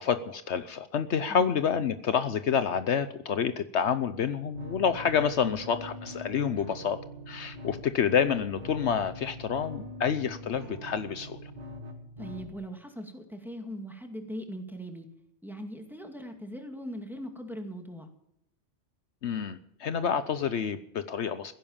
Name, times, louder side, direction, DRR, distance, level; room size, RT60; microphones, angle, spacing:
voice 1, 0.0-7.0 7.3-11.5 19.2-21.5, left 7 dB, 70° left, 12 dB, 1.1 m, -28 dB
sound 1, 4.5-12.5, left 1 dB, 35° right, 2.2 m, -43 dB
voice 2, 12.2-15.1 15.4-18.1, equal, ahead, 4 dB, 2.2 m, -40 dB
16.0 x 10.5 x 7.2 m, 0.76 s
omnidirectional pair, 1.2 m